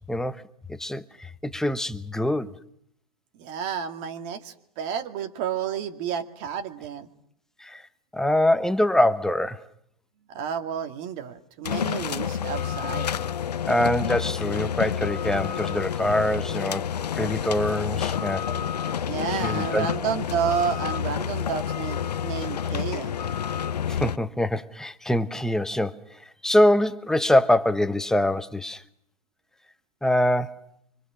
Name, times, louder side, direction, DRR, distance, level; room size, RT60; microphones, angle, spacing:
voice 1, 0.1-0.4 0.7-2.5 7.6-7.8 8.1-9.6 13.7-16.9 17.1-18.5 19.4-19.9 23.9-26.0 26.4-28.8 30.0-30.7, left 1 dB, ahead, 1.1 m, -24 dB
voice 2, 3.4-7.1 10.3-13.2 19.1-23.2, right 8 dB, 45° right, 2.3 m, -31 dB
sound 1, 11.6-24.2, left 8 dB, 80° left, 0.9 m, -29 dB
26.0 x 25.0 x 6.4 m
hypercardioid pair, 110°, 20 cm